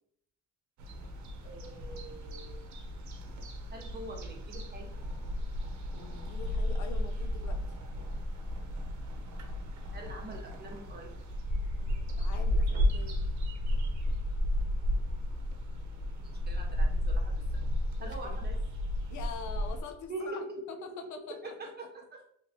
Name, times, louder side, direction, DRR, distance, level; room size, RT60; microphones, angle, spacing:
sound 1, 0.8-19.8, left 1 dB, 65° right, 0.8 m, -33 dB
voice 1, 1.4-2.8 3.7-4.9 9.9-11.2 16.2-17.4 18.0-18.6 20.1-20.8 21.4-22.3, right 2 dB, 35° right, 1 dB, 1.1 m, -43 dB
voice 2, 5.9-7.8 11.8-13.2 18.0-18.4 19.1-21.5, left 5 dB, 75° left, 6 dB, 0.6 m, -45 dB
3.2 x 3.0 x 2.9 m, 0.67 s
cardioid pair, 90°, 30 cm